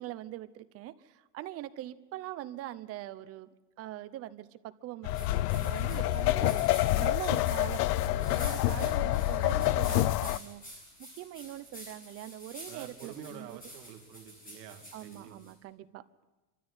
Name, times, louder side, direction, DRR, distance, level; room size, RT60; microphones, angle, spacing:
voice 1, 0.0-3.5 3.8-6.6 7.0-10.6 11.0-13.6 14.9-16.0, right 14 dB, 30° right, 14 dB, 0.8 m, -42 dB
sound 1, 5.0-10.4, left 15 dB, 80° left, 0.7 m, -27 dB
sound 2, 5.1-15.5, equal, 15° left, 7.9 m, -49 dB
voice 2, 5.8-6.1 12.7-15.4, right 9 dB, 80° right, 4 dB, 2.7 m, -48 dB
25.0 x 13.5 x 9.8 m, 1.1 s
supercardioid pair, 160°, 47 cm